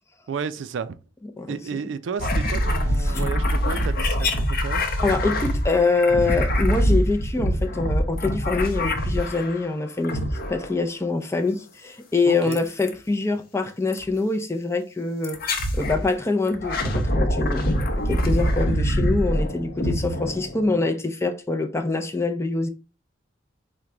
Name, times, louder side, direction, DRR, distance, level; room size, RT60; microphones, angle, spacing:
voice 1, 0.3-1.0 1.5-4.8 12.3-12.6, right 6 dB, 75° right, 0.4 m, -32 dB
sound 1, 2.2-9.6 10.0-10.8 12.5-12.9 13.9-14.1 15.2-16.0 16.5-20.8, equal, 55° left, 0.7 m, -24 dB
voice 2, 5.0-10.2 10.5-15.4 15.7-22.7, left 3 dB, 15° left, 0.4 m, -25 dB
4.5 x 2.2 x 3.7 m
head